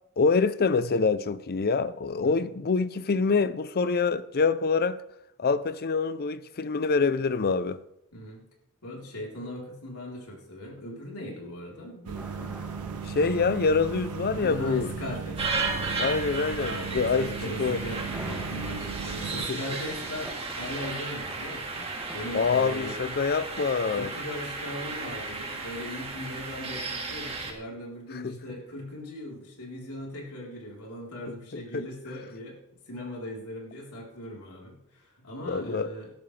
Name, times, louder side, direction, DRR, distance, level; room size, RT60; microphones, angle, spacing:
voice 1, 0.2-5.0 5.4-7.8 13.1-14.9 16.0-17.3 17.6-17.8 19.5-19.6 22.3-24.1 28.2-28.4 31.5-31.8 35.5-35.9, left 4 dB, 45° left, 0.5 m, -25 dB
voice 2, 8.1-8.4 8.8-12.6 14.4-16.2 16.6-23.0 23.9-32.6 32.9-36.2, left 1 dB, 80° left, 3.9 m, -39 dB
sound 1, 12.1-27.4, right 1 dB, 5° right, 2.1 m, -47 dB
sound 2, 12.1-19.5, right 6 dB, 85° right, 0.5 m, -37 dB
sound 3, 15.4-27.5, right 3 dB, 25° right, 2.0 m, -34 dB
18.5 x 12.5 x 3.3 m
head